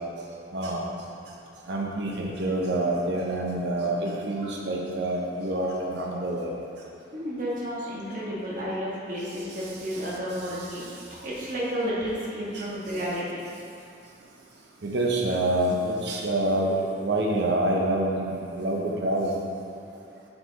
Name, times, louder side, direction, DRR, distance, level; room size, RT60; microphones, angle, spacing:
voice 1, 0.5-0.9 1.7-6.5 12.5-12.7 14.8-19.4, right 1 dB, 65° right, -1 dB, 0.6 m, -27 dB
voice 2, 7.1-13.5, equal, 45° right, -7 dB, 1.4 m, -32 dB
6.7 x 4.5 x 4.0 m, 2.6 s
head